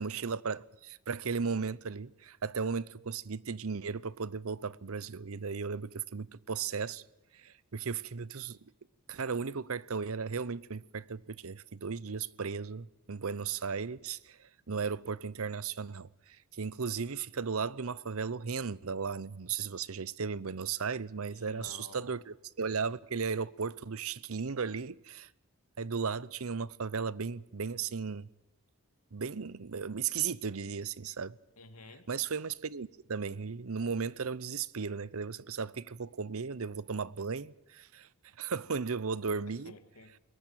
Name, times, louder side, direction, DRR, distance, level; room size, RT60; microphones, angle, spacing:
voice 1, 0.0-7.0 7.3-8.6 9.1-16.1 16.6-25.3 25.8-28.3 29.1-31.3 32.1-38.1 38.4-39.7, right 5 dB, 70° right, 0.8 m, -36 dB
voice 2, 21.3-22.2 31.6-32.0 39.6-40.2, left 3 dB, 90° left, 2.6 m, -51 dB
22.5 x 19.0 x 7.5 m
head